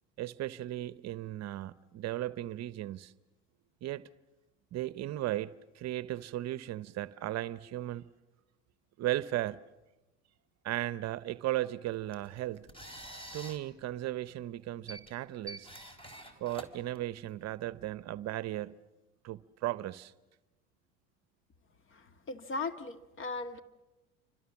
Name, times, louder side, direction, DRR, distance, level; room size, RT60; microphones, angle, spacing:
voice 1, 0.2-3.1 3.8-4.1 4.7-8.1 9.0-9.6 10.6-12.7 13.3-15.7 16.4-18.8 19.2-20.1, right 14 dB, 45° right, 0.8 m, -36 dB
sound 1, 11.9-17.6, right 1 dB, 15° left, 4.0 m, -49 dB
voice 2, 21.9-23.6, left 3 dB, 35° left, 1.9 m, -38 dB
28.0 x 25.0 x 7.2 m
hypercardioid pair, 80°, 37 cm